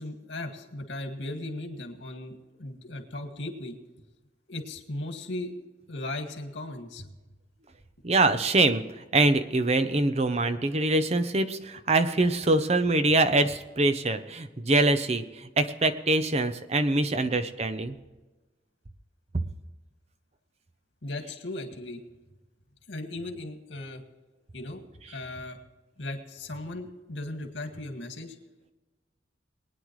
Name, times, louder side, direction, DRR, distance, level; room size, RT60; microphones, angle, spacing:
voice 1, 0.0-3.8 4.5-5.5 5.9-7.1 21.0-22.0 22.9-24.0 24.5-24.8 25.1-25.6 26.0-28.4, left 2 dB, 85° left, 4 dB, 2.0 m, -37 dB
voice 2, 8.0-8.8 9.1-17.9, right 2 dB, 35° right, 10 dB, 0.7 m, -24 dB
21.5 x 9.8 x 3.2 m, 1.2 s
head